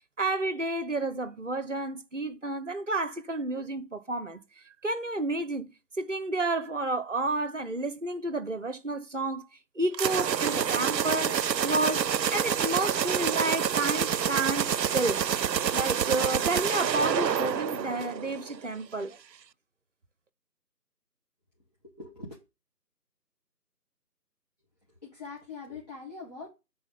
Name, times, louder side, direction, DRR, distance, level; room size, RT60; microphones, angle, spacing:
voice 1, 0.2-4.4 4.8-5.7 6.0-9.4 9.8-15.2 15.7-19.2, right 2 dB, 50° right, 0.9 m, -30 dB
sound 1, 9.9-18.6, right 8 dB, 90° right, 0.6 m, -28 dB
voice 2, 22.0-22.4 25.0-26.5, left 4 dB, 25° left, 1.7 m, -42 dB
8.3 x 4.1 x 5.3 m
figure-of-eight pair, 165°, 49 cm